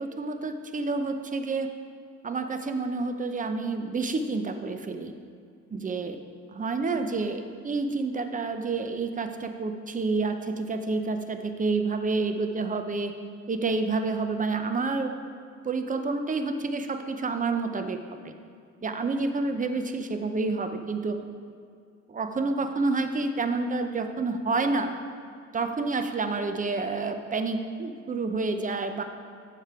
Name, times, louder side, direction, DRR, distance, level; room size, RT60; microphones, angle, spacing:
voice 1, 0.0-1.7 2.2-5.1 5.7-6.2 6.5-13.1 13.5-15.1 15.6-18.0 18.2-18.3 18.8-21.2 22.1-24.9 25.5-29.0, right 3 dB, 25° right, 7 dB, 0.7 m, -29 dB
8.6 x 6.8 x 4.4 m, 2.3 s
cardioid pair, 90°, 30 cm